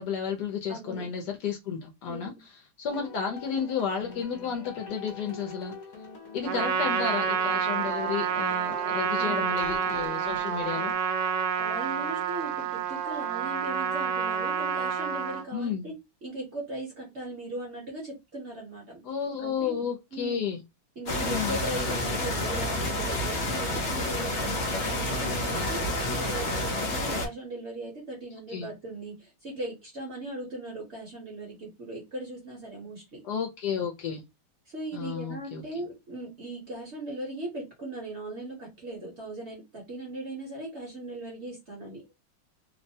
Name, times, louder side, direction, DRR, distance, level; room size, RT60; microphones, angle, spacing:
voice 1, 0.0-2.3 2.8-5.7 6.3-11.0 15.5-15.9 19.0-20.6 21.2-21.6 28.5-28.7 33.2-34.2 34.9-35.6, left 7 dB, 70° left, 1.0 m, -32 dB
voice 2, 0.7-1.1 2.1-2.4 6.4-6.7 9.2-9.5 11.6-15.9 16.2-19.0 19.4-19.7 20.1-20.4 21.0-25.8 26.1-33.2 34.7-42.0, right 1 dB, 45° right, 0.9 m, -38 dB
sound 1, 2.8-10.9, left 3 dB, 55° left, 1.4 m, -44 dB
Trumpet, 6.4-15.5, right 7 dB, 75° right, 1.1 m, -28 dB
sound 2, 21.1-27.3, left 1 dB, 90° left, 0.6 m, -29 dB
3.1 x 2.1 x 2.6 m
omnidirectional pair, 2.1 m